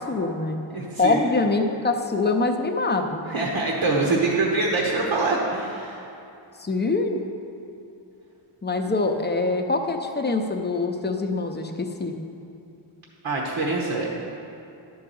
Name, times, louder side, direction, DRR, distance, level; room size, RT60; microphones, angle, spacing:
voice 1, 0.0-0.6 1.0-3.2 6.6-7.2 8.6-12.1, left 3 dB, 20° left, 4 dB, 0.6 m, -24 dB
voice 2, 0.7-1.2 3.3-6.1 13.2-14.1, right 3 dB, 70° right, -3 dB, 1.2 m, -24 dB
11.0 x 4.7 x 6.9 m, 2.7 s
wide cardioid pair, 140°, 49 cm